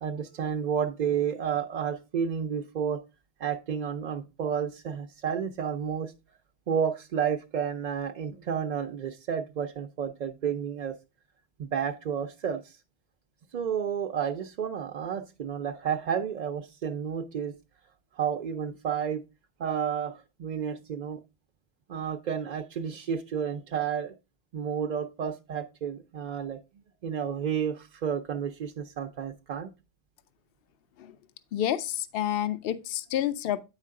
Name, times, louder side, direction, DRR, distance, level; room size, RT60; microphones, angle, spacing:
voice 1, 0.0-3.0 3.4-6.1 6.7-11.0 11.6-12.8 13.5-17.5 18.2-19.2 19.6-21.2 21.9-24.1 24.5-26.6 27.0-29.7, right 7 dB, 55° right, 0.6 m, -31 dB
voice 2, 31.5-33.6, left 11 dB, 70° left, 0.8 m, -29 dB
8.3 x 5.1 x 3.6 m
omnidirectional pair, 1.1 m